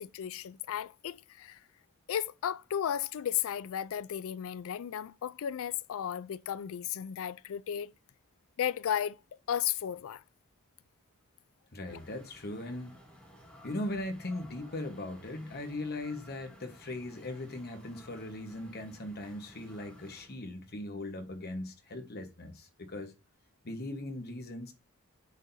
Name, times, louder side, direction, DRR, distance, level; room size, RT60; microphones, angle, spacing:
voice 1, 0.0-1.6 2.1-7.9 8.6-9.2 9.5-10.2, left 9 dB, 65° left, 0.3 m, -34 dB
voice 2, 11.7-12.9 13.6-23.1 23.6-24.7, left 1 dB, 45° left, 1.2 m, -39 dB
sound 1, 11.8-20.4, equal, 5° left, 2.3 m, -56 dB
7.4 x 6.4 x 2.7 m
head